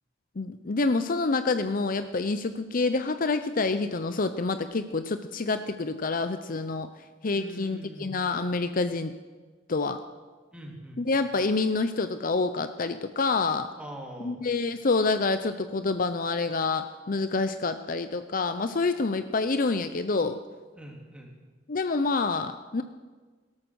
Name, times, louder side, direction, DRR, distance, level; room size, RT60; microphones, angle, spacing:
voice 1, 0.4-6.9 7.2-9.1 9.7-10.0 11.0-13.7 14.2-20.4 21.7-22.8, left 3 dB, 45° left, 10 dB, 0.7 m, -27 dB
voice 2, 7.3-8.2 10.5-11.0 13.8-14.4 20.8-21.3, equal, 5° right, -1 dB, 3.0 m, -42 dB
17.5 x 13.0 x 6.4 m, 1.3 s
head